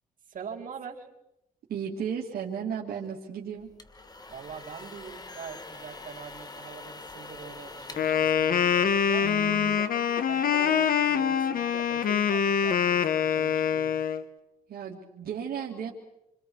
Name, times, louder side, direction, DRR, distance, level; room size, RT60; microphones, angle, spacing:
voice 1, 0.3-1.1 4.3-9.9 10.3-13.9, right 6 dB, 60° right, -1 dB, 4.3 m, -43 dB
voice 2, 1.7-3.7 9.2-9.8 14.7-15.9, right 7 dB, 85° right, -4 dB, 2.7 m, -34 dB
Crying sobbing, 2.9-3.0 5.5-5.7 7.3-7.4 7.9-8.0 8.2-8.3 9.3-10.4 11.4-11.7 12.3-12.4, right 3 dB, 5° right, 7.1 m, -54 dB
sound 1, 3.6-9.3, left 3 dB, 25° left, 1.6 m, -45 dB
Wind instrument woodwind instrument, 8.0-14.2, left 8 dB, 70° left, 1.3 m, -25 dB
28.0 x 26.5 x 4.8 m, 0.86 s
cardioid pair, 120°, 15 cm